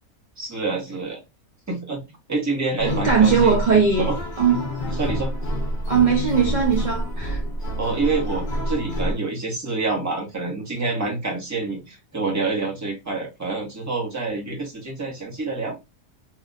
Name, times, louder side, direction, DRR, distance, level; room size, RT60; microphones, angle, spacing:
voice 1, 0.4-1.2 1.7-4.2 4.5-4.6 4.8-5.3 7.8-15.8, right 3 dB, 15° right, 0.8 m, -27 dB
sound 1, 2.8-9.2, equal, 45° left, 0.8 m, -27 dB
voice 2, 2.8-4.1 4.4-4.7 5.9-7.4, right 6 dB, 50° right, 0.5 m, -19 dB
2.8 x 2.5 x 2.4 m
omnidirectional pair, 1.5 m